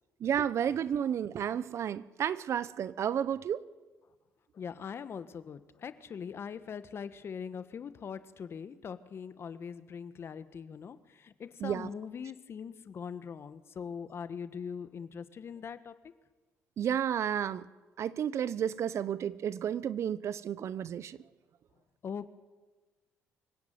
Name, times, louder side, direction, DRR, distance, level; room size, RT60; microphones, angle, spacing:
voice 1, 0.2-3.7 11.6-11.9 16.8-17.7 18.0-21.2, right 9 dB, 60° right, 0.9 m, -32 dB
voice 2, 4.5-16.0 22.0-22.3, left 6 dB, 50° left, 1.5 m, -42 dB
25.0 x 16.5 x 9.4 m
supercardioid pair, 80°, 5 cm